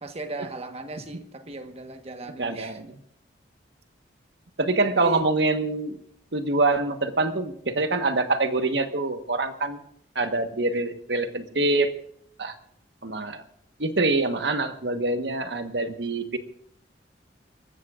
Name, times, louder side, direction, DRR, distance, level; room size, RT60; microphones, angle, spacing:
voice 1, 0.0-2.8 4.8-5.3, right 2 dB, 35° right, 7 dB, 1.3 m, -37 dB
voice 2, 2.4-2.9 4.6-6.0 6.3-9.8 10.1-11.9 12.4-12.5 13.0-13.4 13.8-16.4, right 2 dB, 75° right, 7 dB, 1.3 m, -25 dB
27.0 x 14.0 x 2.5 m, 0.69 s
head